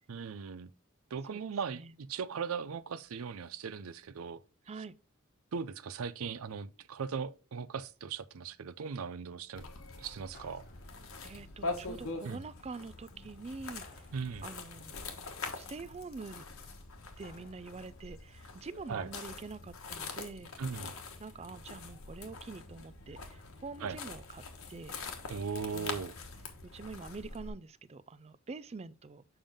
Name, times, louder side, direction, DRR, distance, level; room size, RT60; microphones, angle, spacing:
voice 1, 0.1-0.7 1.1-4.4 5.5-9.6 10.0-10.6 12.2-12.4 14.1-14.4 18.9-19.1 20.6-20.9 23.8-24.0 25.3-26.1, right 6 dB, 80° right, 0.5 m, -38 dB
sound 1, 9.6-27.5, left 3 dB, 80° left, 1.3 m, -44 dB
sound 2, 10.3-11.4 13.8-14.8 17.2-18.1, left 3 dB, 45° left, 1.2 m, -59 dB
voice 2, 11.2-14.0 14.4-14.9 15.5-16.4 17.2-20.5 21.2-24.4 24.7-25.0 25.7-26.1 26.7-29.2, right 4 dB, 30° right, 0.4 m, -45 dB
7.0 x 5.4 x 3.5 m
head